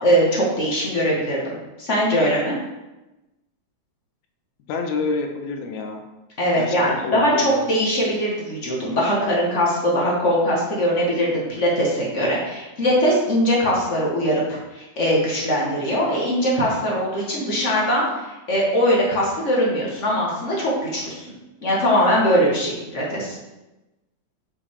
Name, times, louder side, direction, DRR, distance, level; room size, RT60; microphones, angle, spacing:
voice 1, 0.0-2.5 6.4-21.3 21.6-23.4, equal, 40° left, -4 dB, 1.1 m, -21 dB
voice 2, 4.7-6.0 6.5-7.8, left 4 dB, 75° left, 4 dB, 2.1 m, -28 dB
6.6 x 5.3 x 3.6 m, 1.0 s
omnidirectional pair, 3.3 m